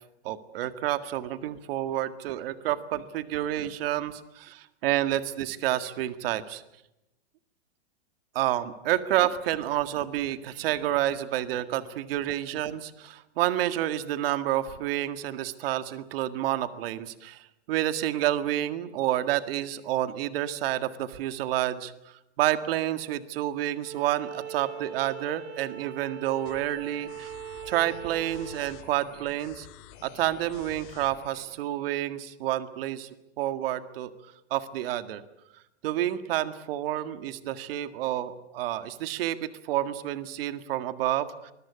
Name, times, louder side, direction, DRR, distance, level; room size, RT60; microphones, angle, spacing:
voice 1, 0.2-6.6 8.4-27.3 27.7-29.7 30.0-33.1 33.4-34.1 34.5-35.2 35.8-41.5, right 13 dB, 55° right, 11 dB, 1.9 m, -29 dB
Bowed string instrument, 23.8-28.8, right 10 dB, 30° right, 3.9 m, -41 dB
sound 1, 26.4-31.4, left 11 dB, 45° left, 3.4 m, -49 dB
25.5 x 21.5 x 8.5 m, 0.87 s
hypercardioid pair, 150°, 34 cm